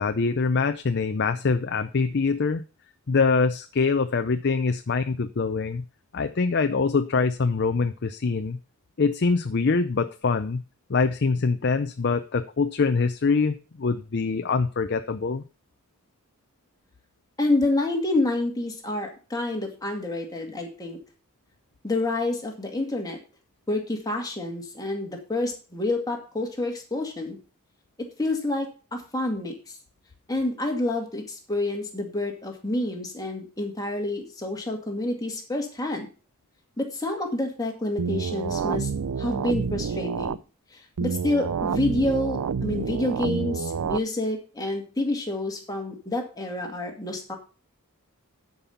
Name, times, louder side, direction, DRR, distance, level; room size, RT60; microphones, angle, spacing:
voice 1, 0.0-2.6 3.1-5.8 6.1-8.6 9.0-10.6 10.9-15.4, left 4 dB, 50° left, 9 dB, 0.5 m, -24 dB
voice 2, 17.4-21.0 21.8-23.2 23.7-27.4 28.0-29.8 30.3-36.1 36.8-38.9 39.2-40.4 41.0-47.3, left 2 dB, 15° left, 2 dB, 2.1 m, -28 dB
sound 1, 38.0-40.4 41.0-44.0, right 6 dB, 85° right, 0.5 m, -28 dB
11.0 x 5.4 x 5.7 m, 0.35 s
head